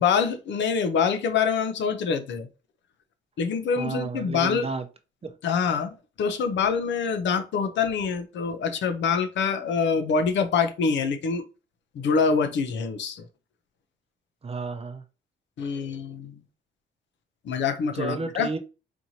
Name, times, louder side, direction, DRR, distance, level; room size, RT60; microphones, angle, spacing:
voice 1, 0.0-2.5 3.4-4.7 5.4-11.4 11.9-13.2 15.6-16.4 17.4-18.5, left 6 dB, 70° left, 0.7 m, -25 dB
voice 2, 3.8-4.8 5.2-5.3 14.4-15.0 18.0-18.6, right 4 dB, 30° right, 0.7 m, -32 dB
4.4 x 2.9 x 2.8 m
cardioid pair, 90°, 20 cm